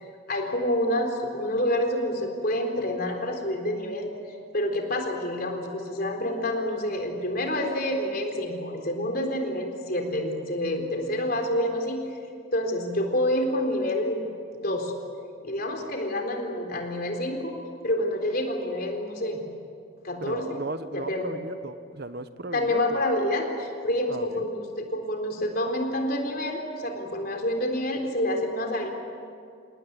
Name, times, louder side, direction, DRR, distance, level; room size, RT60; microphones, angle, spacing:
voice 1, 0.3-4.1 4.5-12.0 12.5-14.2 14.5-14.9 15.4-17.5 17.8-19.4 20.0-20.5 20.9-21.3 22.5-28.9, left 1 dB, 45° left, 3 dB, 3.9 m, -28 dB
voice 2, 20.2-23.0 24.1-24.4, right 2 dB, 50° right, 12 dB, 0.9 m, -36 dB
28.0 x 19.0 x 9.6 m, 2.3 s
head